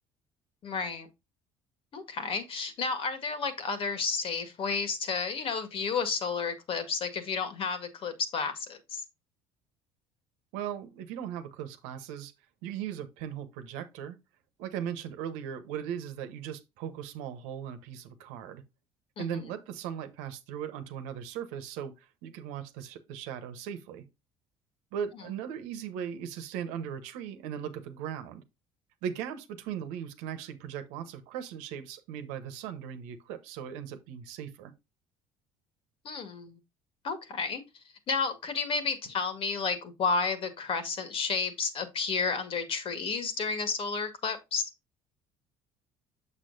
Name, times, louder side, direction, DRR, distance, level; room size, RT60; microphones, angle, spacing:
voice 1, 0.6-1.1 1.9-9.0 19.2-19.4 36.0-36.6 37.0-37.6 38.1-44.6, left 5 dB, 50° left, 1.9 m, -31 dB
voice 2, 10.5-12.3 12.6-14.2 14.6-18.6 19.2-24.1 24.9-28.4 29.0-34.7, right 9 dB, 85° right, 1.1 m, -38 dB
7.1 x 6.7 x 2.7 m
supercardioid pair, 90°, 12 cm